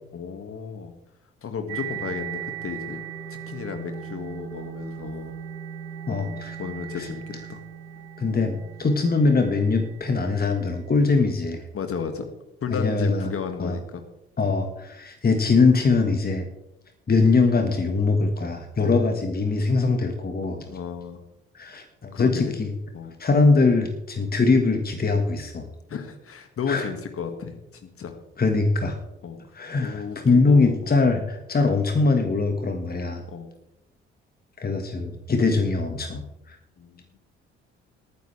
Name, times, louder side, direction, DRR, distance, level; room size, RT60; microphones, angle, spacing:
voice 1, 0.1-0.9 1.4-3.0 3.3-5.3 6.1-7.6 11.7-12.3 12.6-14.0 18.8-19.0 20.7-21.2 22.1-22.6 22.9-23.2 25.9-28.2 29.2-29.4 29.8-31.0 33.3-33.5 36.8-37.1, left 6 dB, 45° left, 6 dB, 2.0 m, -33 dB
sound 1, 1.7-11.2, right 9 dB, 70° right, 3.2 m, -38 dB
voice 2, 6.1-6.6 7.0-7.1 8.2-11.6 12.7-13.3 13.6-13.8 14.4-16.5 17.1-20.6 21.5-22.7 23.2-25.7 26.7-26.9 28.4-29.0 29.6-33.2 34.6-36.6, left 3 dB, 30° left, 5 dB, 1.7 m, -22 dB
20.0 x 9.5 x 3.4 m, 0.88 s
figure-of-eight pair, 45°, 32 cm